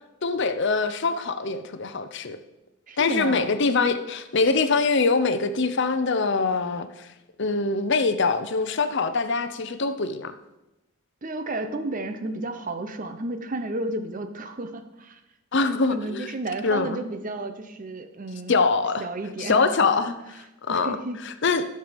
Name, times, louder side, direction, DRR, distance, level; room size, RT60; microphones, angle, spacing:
voice 1, 0.2-2.4 3.0-6.9 7.4-10.3 15.5-16.3 16.6-17.0 18.5-19.0 19.4-21.0 21.2-21.6, left 4 dB, 55° left, 10 dB, 0.7 m, -24 dB
voice 2, 2.9-3.5 11.2-15.2 15.6-18.6 19.0-19.6 20.7-21.2, right 2 dB, 40° right, 8 dB, 0.8 m, -32 dB
12.0 x 6.8 x 5.2 m, 0.95 s
head